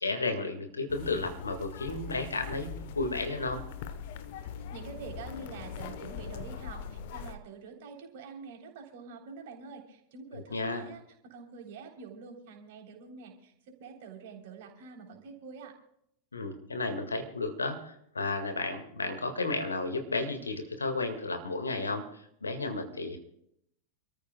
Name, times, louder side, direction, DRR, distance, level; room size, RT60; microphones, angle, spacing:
voice 1, 0.0-2.7 3.0-3.6 10.5-10.8 16.3-23.2, left 3 dB, 75° left, 6 dB, 1.9 m, -33 dB
sound 1, 0.9-7.4, left 7 dB, 50° left, 1.0 m, -41 dB
voice 2, 4.7-15.7, right 5 dB, 50° right, 2 dB, 3.6 m, -46 dB
29.0 x 13.5 x 2.3 m, 0.73 s
figure-of-eight pair, 90°, 0 cm